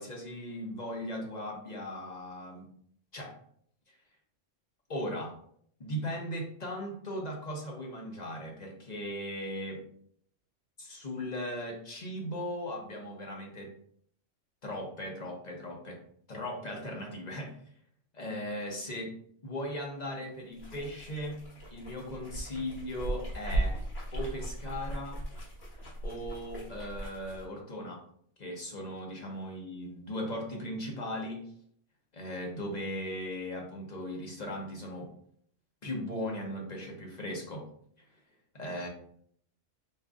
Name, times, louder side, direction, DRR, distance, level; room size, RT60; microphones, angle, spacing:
voice 1, 0.0-2.7 3.1-3.4 3.9-4.0 4.9-5.4 5.8-9.8 10.8-13.7 14.6-16.0 16.3-17.6 18.1-19.1 19.4-21.4 21.7-23.8 24.1-25.2 26.0-28.0 28.4-31.5 32.1-35.1 35.8-37.7 38.0-38.1 38.5-38.9, equal, 40° left, 0 dB, 0.9 m, -38 dB
sound 1, 20.5-27.4, right 1 dB, 55° left, 1.7 m, -37 dB
4.1 x 3.8 x 2.4 m, 0.63 s
omnidirectional pair, 1.3 m